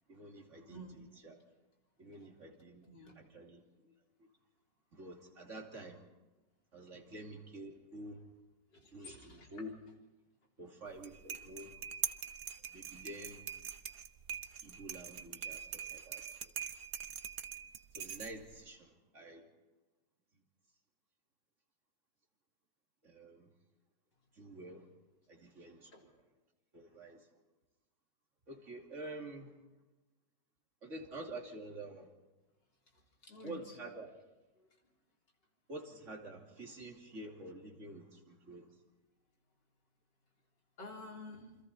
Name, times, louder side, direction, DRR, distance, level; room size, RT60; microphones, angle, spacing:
voice 1, 0.1-1.4 2.0-2.9 3.1-3.9 4.2-4.3 4.9-6.1 6.7-8.2 8.9-9.8 10.6-11.8 12.7-13.4 14.6-16.5 17.9-19.5 23.0-23.5 24.3-24.9 25.3-26.1 26.7-27.3 28.5-29.6 30.8-32.1 33.4-34.1 35.7-38.7, right 1 dB, 40° right, 1 dB, 3.1 m, -48 dB
voice 2, 0.7-1.0 2.1-2.3 2.9-3.2 8.7-9.6 25.9-26.0 32.9-33.8 34.6-34.9 40.8-41.6, left 1 dB, 70° left, 0 dB, 4.4 m, -51 dB
sound 1, 10.9-18.6, right 8 dB, 55° right, 1.3 m, -43 dB
28.5 x 25.5 x 4.3 m, 1.1 s
omnidirectional pair, 2.0 m